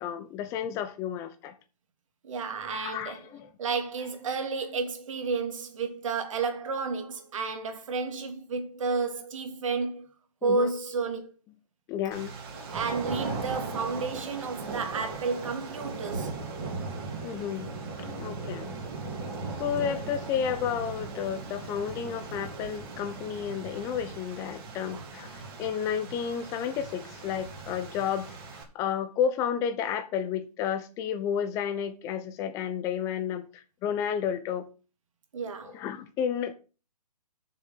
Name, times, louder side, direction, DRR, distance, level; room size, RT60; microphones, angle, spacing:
voice 1, 0.0-1.6 2.7-3.5 10.4-10.7 11.9-12.3 17.2-17.7 18.0-18.7 19.6-28.3 28.7-34.7 35.6-36.5, left 8 dB, 15° left, 0.9 m, -31 dB
voice 2, 2.2-3.2 3.6-10.1 10.4-11.3 12.7-16.4 24.9-25.1 35.3-35.8, right 4 dB, 55° right, 2.6 m, -31 dB
sound 1, 12.1-28.6, right 3 dB, 35° right, 3.1 m, -38 dB
6.9 x 6.8 x 7.6 m
hypercardioid pair, 160°, 20 cm